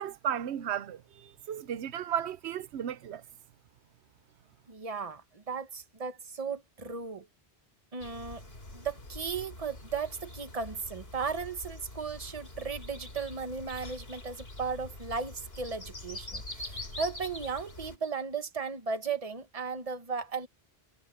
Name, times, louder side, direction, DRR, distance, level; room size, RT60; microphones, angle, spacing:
voice 1, 0.0-3.2, right 9 dB, 85° right, 1.0 m, -34 dB
voice 2, 4.7-7.3 7.9-8.4 8.7-20.5, right 5 dB, 35° right, 1.4 m, -36 dB
sound 1, 8.0-18.0, left 1 dB, 65° left, 4.1 m, -44 dB
omnidirectional pair, 1.1 m